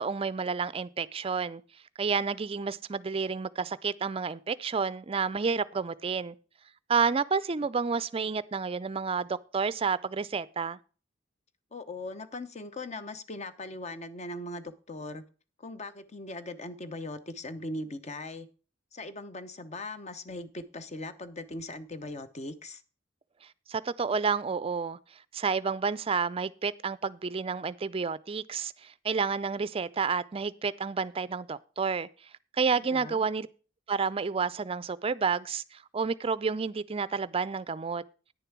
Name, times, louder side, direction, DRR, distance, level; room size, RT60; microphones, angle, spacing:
voice 1, 0.0-1.6 2.0-6.4 6.9-10.8 23.7-25.0 25.3-32.1 32.6-33.5 33.9-38.0, right 5 dB, 30° right, 0.4 m, -30 dB
voice 2, 11.7-15.2 15.6-18.5 18.9-22.8 32.9-33.2, left 2 dB, 35° left, 0.8 m, -39 dB
9.9 x 6.9 x 5.9 m
head